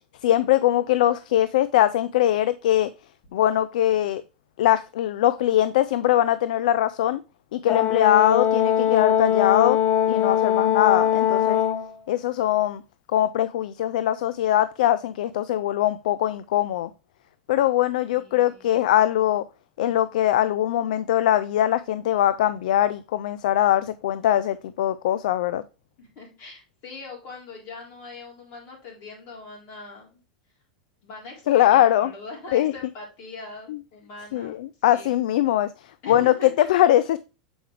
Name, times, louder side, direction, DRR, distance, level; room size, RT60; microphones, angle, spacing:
voice 1, 0.2-2.9 3.3-4.2 4.6-7.2 7.5-9.8 10.1-11.6 12.1-12.8 13.1-16.9 17.5-19.4 19.8-25.6 31.5-32.1 32.5-32.7 33.7-33.8 34.3-35.7 36.1-37.2, left 12 dB, 70° left, 0.4 m, -21 dB
Brass instrument, 7.7-11.9, left 10 dB, 40° left, 0.8 m, -21 dB
voice 2, 18.1-18.7 26.0-30.2 31.0-34.6 34.9-35.2 36.0-36.7, left 2 dB, 55° left, 3.9 m, -42 dB
7.1 x 4.7 x 3.3 m
hypercardioid pair, 100°, 4 cm